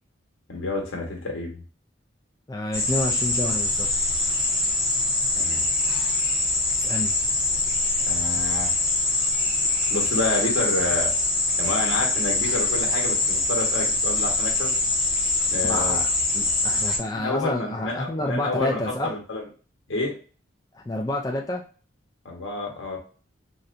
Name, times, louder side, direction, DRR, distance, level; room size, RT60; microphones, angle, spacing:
voice 1, 0.5-1.6 5.3-5.7 8.1-8.8 9.9-11.1 11.6-14.7 15.5-16.0 17.2-19.5 19.9-20.1 22.2-23.0, left 2 dB, 80° left, 0 dB, 1.0 m, -29 dB
voice 2, 2.5-3.9 6.8-7.1 15.7-16.0 16.3-19.1 20.7-21.6, left 1 dB, 20° left, 0 dB, 0.3 m, -28 dB
sound 1, 2.7-17.0, left 2 dB, 5° right, 0.7 m, -24 dB
4.0 x 2.1 x 2.5 m, 0.38 s
head